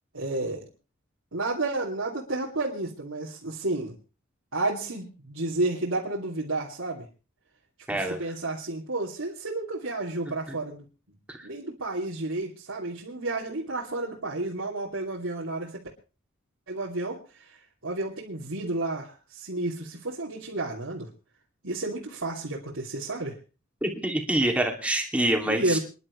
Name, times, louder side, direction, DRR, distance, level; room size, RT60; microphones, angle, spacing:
voice 1, 0.1-0.7 1.3-3.9 4.5-7.1 7.9-10.8 11.4-15.8 16.7-21.1 21.6-23.4 25.5-25.8, right 2 dB, 85° right, -5 dB, 2.9 m, -31 dB
voice 2, 7.9-8.3 10.5-10.6 11.3-11.5 23.8-25.8, right 1 dB, 5° right, 2 dB, 2.6 m, -26 dB
28.5 x 11.0 x 3.2 m, 0.34 s
head